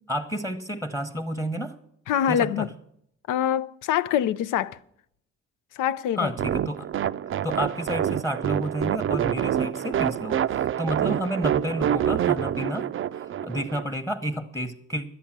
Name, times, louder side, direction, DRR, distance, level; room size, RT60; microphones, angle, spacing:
voice 1, 0.1-1.7 2.3-2.7 6.2-6.9 7.3-12.9 13.1-15.0, equal, 10° left, 1.0 m, -30 dB
voice 2, 2.1-2.7 3.3-4.8 5.7-6.3, left 10 dB, 85° left, 0.6 m, -24 dB
sound 1, 6.4-13.8, right 10 dB, 45° right, 0.4 m, -26 dB
12.0 x 8.4 x 7.3 m
cardioid pair, 90°, 30 cm